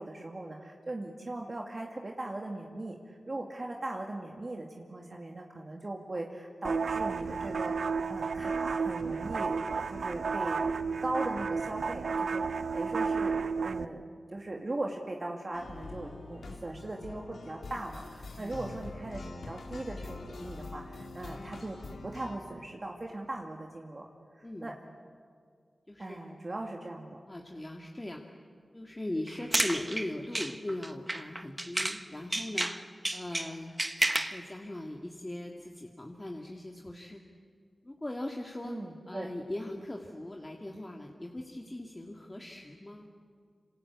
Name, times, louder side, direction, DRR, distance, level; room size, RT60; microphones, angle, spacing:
voice 1, 0.0-10.6 11.0-14.1 14.3-24.1 24.4-24.7 26.0-27.2 38.6-39.3, right 2 dB, 40° right, 1 dB, 2.3 m, -39 dB
sound 1, 6.6-13.9, right 5 dB, 85° right, 0.8 m, -32 dB
sound 2, 15.5-22.4, left 3 dB, 90° left, 2.8 m, -44 dB
voice 2, 24.4-24.7 25.9-26.2 27.3-28.2 28.7-32.7 33.1-33.7 34.1-37.2 37.8-38.7 39.1-43.1, left 1 dB, 25° left, 1 dB, 2.1 m, -39 dB
sound 3, 29.3-32.0 32.3-34.4, right 1 dB, 20° right, 1.3 m, -31 dB
27.0 x 26.5 x 8.3 m, 2.1 s
cardioid pair, 60°, 0 cm